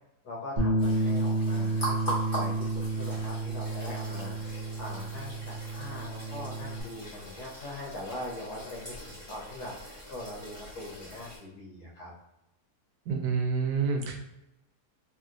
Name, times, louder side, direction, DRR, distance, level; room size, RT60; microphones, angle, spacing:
voice 1, 0.2-12.1 13.8-14.1, left 1 dB, 75° left, -2 dB, 1.4 m, -42 dB
Bass guitar, 0.6-6.8, right 2 dB, 45° right, 0.5 m, -31 dB
sound 1, 0.8-11.4, right 1 dB, 15° left, 1.2 m, -41 dB
voice 2, 13.1-14.2, right 5 dB, 90° right, 3 dB, 1.2 m, -28 dB
3.0 x 2.8 x 2.4 m, 0.89 s
omnidirectional pair, 1.7 m